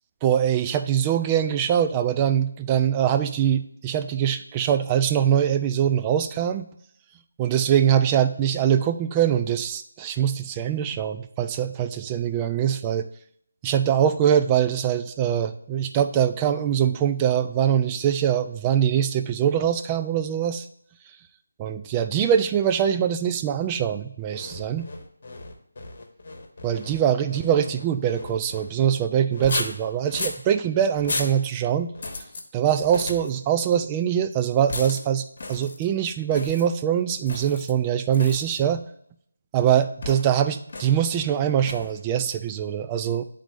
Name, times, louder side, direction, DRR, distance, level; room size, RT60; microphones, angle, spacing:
voice 1, 0.2-6.7 7.4-13.1 13.6-20.7 21.6-24.9 26.6-31.9 32.5-38.8 39.5-43.2, right 9 dB, 15° right, 8 dB, 0.3 m, -23 dB
sound 1, 24.3-28.7 29.3-30.4 31.0-31.4 31.9-32.4 32.8-33.4 34.7-35.0 35.4-35.9 36.3-36.7 37.3-37.7 38.1-38.6 40.0-40.3 40.7-41.0 41.6-42.0, left 2 dB, 50° left, 1.1 m, -35 dB
9.9 x 3.9 x 3.1 m, 0.70 s
figure-of-eight pair, 165°, 0 cm